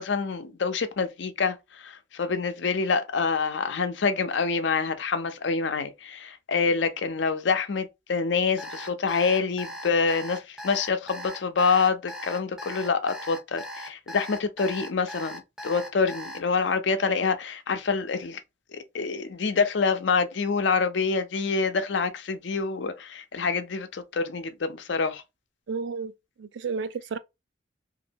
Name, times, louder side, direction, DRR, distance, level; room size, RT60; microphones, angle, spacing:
voice 1, 0.0-18.4 18.7-25.2, left 4 dB, 80° left, 0.5 m, -26 dB
Alarm, 8.6-16.4, equal, ahead, 0.5 m, -39 dB
voice 2, 25.7-26.1 26.4-27.2, right 5 dB, 80° right, 0.4 m, -31 dB
3.0 x 2.6 x 2.7 m
head